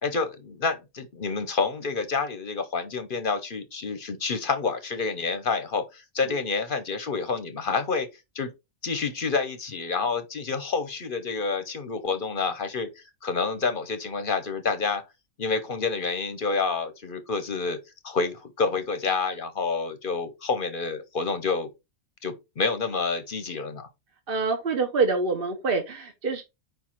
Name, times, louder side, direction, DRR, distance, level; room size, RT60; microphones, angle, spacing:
voice 1, 0.0-8.1 8.3-8.5 8.8-15.0 15.4-17.8 18.0-21.7 22.2-23.9, left 4 dB, 45° left, 0.9 m, -28 dB
voice 2, 24.3-26.4, right 4 dB, 45° right, 1.1 m, -26 dB
4.9 x 4.6 x 4.3 m
omnidirectional pair, 1.4 m